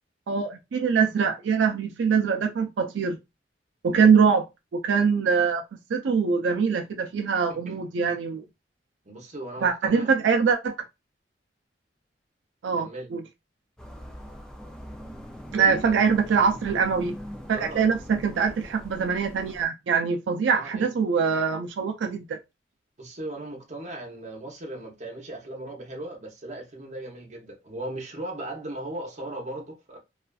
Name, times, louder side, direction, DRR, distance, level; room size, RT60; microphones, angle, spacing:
voice 1, 0.3-3.2 3.8-4.4 4.7-5.6 5.9-8.4 9.6-10.7 12.6-13.2 15.5-17.2 17.5-22.4, right 6 dB, 90° right, 0.4 m, -23 dB
voice 2, 3.9-4.3 7.5-7.8 9.1-10.1 12.8-13.1 15.5-16.0 17.5-17.9 20.5-20.9 23.0-30.0, right 1 dB, 40° right, 0.7 m, -38 dB
sound 1, 13.8-19.7, equal, 5° left, 0.3 m, -41 dB
2.4 x 2.3 x 2.3 m
head